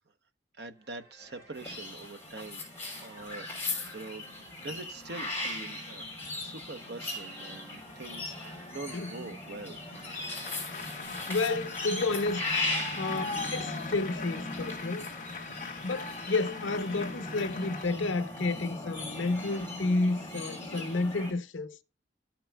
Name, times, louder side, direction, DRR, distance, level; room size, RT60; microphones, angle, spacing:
voice 1, 0.6-2.6 3.0-4.3 4.6-6.1 6.4-9.8, right 3 dB, 60° right, 0.8 m, -44 dB
sound 1, 0.7-11.1, right 1 dB, 15° right, 3.8 m, -54 dB
sound 2, 1.5-21.3, left 2 dB, 10° left, 3.4 m, -38 dB
Applause, 9.9-17.8, left 4 dB, 45° left, 1.7 m, -40 dB
voice 2, 11.3-12.4 13.0-15.1 15.8-21.8, left 3 dB, 90° left, 0.7 m, -31 dB
13.0 x 6.0 x 2.2 m
head